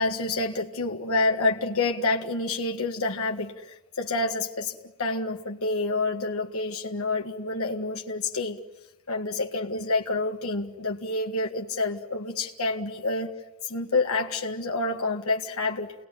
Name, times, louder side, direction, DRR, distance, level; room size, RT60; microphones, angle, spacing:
voice 1, 0.0-8.6 9.1-13.3 13.6-15.9, left 3 dB, 85° left, 2 dB, 1.7 m, -28 dB
29.5 x 20.0 x 9.9 m, 1.1 s
head